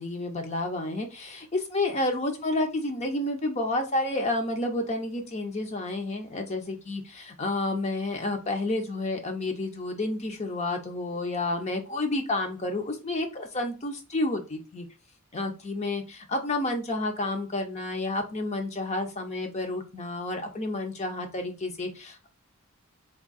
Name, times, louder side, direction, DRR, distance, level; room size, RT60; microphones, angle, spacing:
voice 1, 0.0-14.9 15.3-22.3, left 2 dB, 30° left, 5 dB, 0.6 m, -30 dB
3.5 x 2.7 x 4.0 m, 0.31 s
head